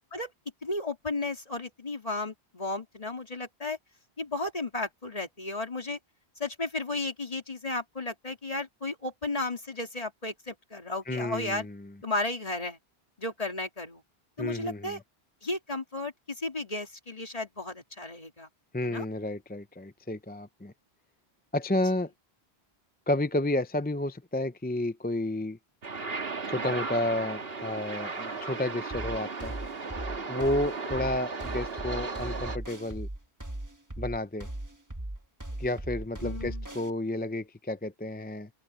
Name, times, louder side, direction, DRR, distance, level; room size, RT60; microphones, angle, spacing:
voice 1, 0.6-3.8 4.2-6.0 6.4-11.7 12.0-12.8 13.2-14.0 14.4-15.0 15.4-18.5 18.8-19.0 30.3-30.7 36.2-36.7, left 2 dB, 35° left, 2.8 m, -34 dB
voice 2, 11.1-11.8 14.4-15.0 18.7-20.7 21.5-22.1 23.1-25.6 26.5-29.5 30.3-33.1 34.0-34.5 35.6-38.5, left 1 dB, 15° left, 0.4 m, -31 dB
sound 1, 25.8-32.6, right 4 dB, 70° right, 1.9 m, -36 dB
sound 2, 28.9-36.9, right 1 dB, 20° right, 1.3 m, -38 dB
open air
omnidirectional pair, 1.1 m